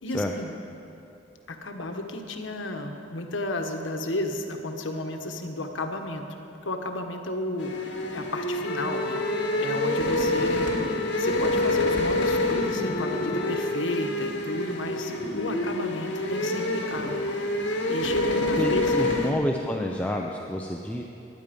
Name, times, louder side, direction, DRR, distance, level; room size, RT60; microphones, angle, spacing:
voice 1, 0.0-0.5 1.5-6.3 6.6-7.7 8.1-9.2 9.6-10.7 11.2-17.2 17.9-19.3, left 1 dB, 85° left, 4 dB, 1.2 m, -32 dB
sound 1, 7.6-19.3, left 1 dB, 65° left, 1.9 m, -27 dB
Wind instrument woodwind instrument, 8.6-13.8, left 3 dB, 50° left, 1.0 m, -34 dB
voice 2, 18.6-21.0, equal, 5° left, 0 dB, 0.6 m, -28 dB
21.0 x 9.6 x 5.3 m, 2.7 s
head